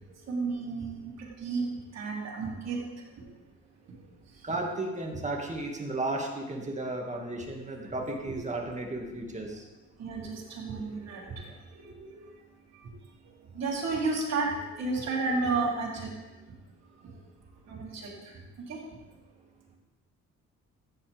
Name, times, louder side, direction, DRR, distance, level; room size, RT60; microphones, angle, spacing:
voice 1, 0.3-1.7 1.9-2.8 3.2-3.3 8.3-8.4 10.0-11.5 11.7-12.3 13.5-16.1 17.7-18.4 18.7-18.8, right 3 dB, 60° right, -4 dB, 3.5 m, -32 dB
voice 2, 4.4-9.6 11.4-11.5, right 2 dB, 25° right, 1 dB, 2.0 m, -34 dB
14.0 x 8.8 x 3.5 m, 1.1 s
cardioid pair, 90°, 30 cm